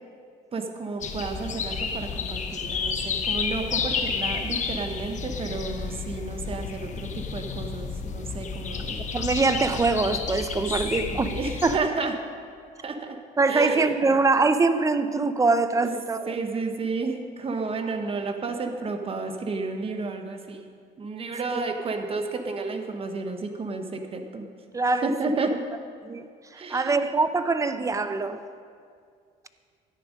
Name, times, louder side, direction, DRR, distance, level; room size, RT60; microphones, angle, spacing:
voice 1, 0.5-9.0 10.6-10.7 11.1-12.1 12.8-13.2 13.5-13.9 15.8-15.9 16.3-20.7 21.0-24.4 25.0-25.6 26.5-27.0, right 3 dB, 35° right, 5 dB, 1.2 m, -31 dB
sound 1, 1.0-11.8, left 5 dB, 45° left, 1.1 m, -31 dB
voice 2, 9.0-11.3 11.6-11.8 13.4-16.4 21.5-21.6 24.7-25.1 26.0-26.3 26.5-28.4, right 3 dB, 20° right, 11 dB, 0.7 m, -23 dB
13.0 x 10.0 x 5.3 m, 2.2 s
cardioid pair, 110°, 17 cm